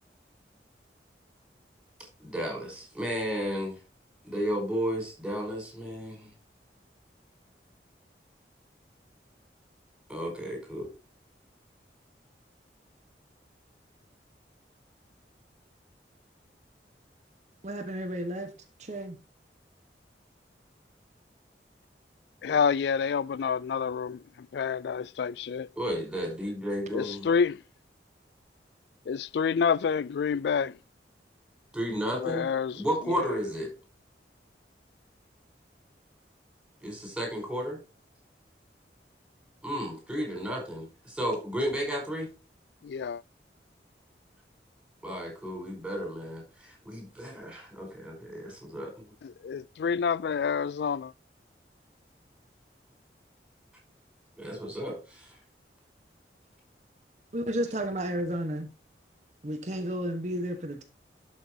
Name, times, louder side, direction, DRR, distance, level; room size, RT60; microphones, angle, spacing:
voice 1, 2.2-3.8 4.2-6.3 10.1-10.9 25.8-27.3 31.7-32.5 32.7-33.7 36.8-37.8 39.6-42.3 45.0-49.1 54.4-55.3, equal, 5° right, 5.2 m, -33 dB
voice 2, 17.6-18.5 18.8-19.2 57.3-58.7 59.4-60.8, right 1 dB, 40° right, 1.3 m, -32 dB
voice 3, 22.4-24.2 24.5-25.7 26.9-27.6 29.1-30.7 32.1-32.8 33.1-33.3 42.8-43.2 49.2-51.1, left 6 dB, 70° left, 0.3 m, -28 dB
12.0 x 6.4 x 2.9 m
head